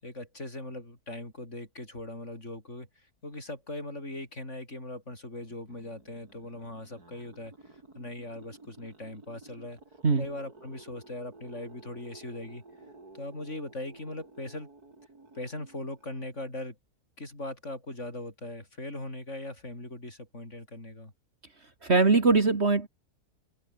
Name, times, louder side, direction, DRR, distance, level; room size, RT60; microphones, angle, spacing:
voice 1, 0.0-9.8 10.1-12.6 13.1-14.7 15.3-16.8 17.2-21.1, left 1 dB, 45° left, 7.5 m, -40 dB
sound 1, 5.5-16.6, right 3 dB, 70° right, 5.5 m, -53 dB
voice 2, 21.8-22.9, right 3 dB, 45° right, 2.2 m, -21 dB
omnidirectional pair, 1.7 m